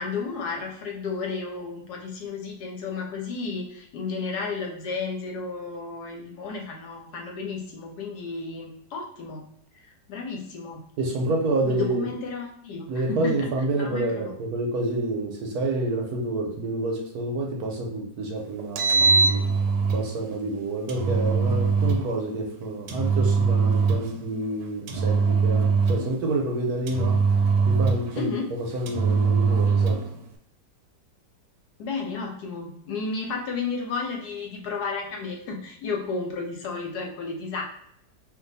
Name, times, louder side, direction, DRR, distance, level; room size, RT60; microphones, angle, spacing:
voice 1, 0.0-9.4 10.1-10.8 11.6-13.5 13.7-14.4 28.2-28.5 31.8-37.6, left 4 dB, 70° left, 1 dB, 1.0 m, -32 dB
voice 2, 11.0-12.0 12.9-19.4 19.9-27.2 27.7-28.3 28.7-30.0, right 2 dB, 65° right, 0 dB, 1.0 m, -28 dB
Engine, 18.6-20.1 20.9-22.1 22.9-24.2 24.9-26.2 26.9-28.2 28.9-30.1, right 4 dB, 85° right, 1.3 m, -22 dB
2.7 x 2.5 x 3.9 m, 0.71 s
omnidirectional pair, 1.9 m